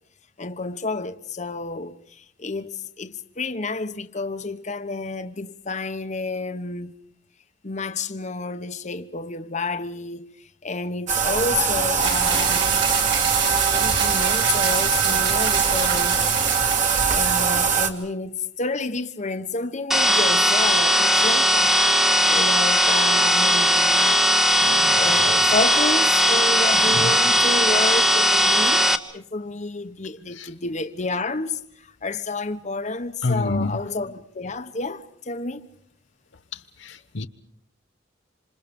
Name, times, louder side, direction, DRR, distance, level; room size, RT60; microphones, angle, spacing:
voice 1, 0.4-7.0 7.6-12.8 13.7-16.3 17.1-22.0 22.3-24.2 24.9-35.7, left 3 dB, 40° left, 1.1 m, -30 dB
Bathtub (filling or washing), 11.1-17.9, right 6 dB, 40° right, 2.2 m, -22 dB
sound 1, 12.0-17.6, right 6 dB, 70° right, 5.2 m, -27 dB
sound 2, 19.9-29.0, equal, ahead, 1.1 m, -18 dB
voice 2, 24.6-25.5 26.7-27.3 30.3-30.5 33.2-33.8 36.5-37.3, left 2 dB, 70° left, 0.9 m, -29 dB
27.0 x 26.5 x 5.3 m
head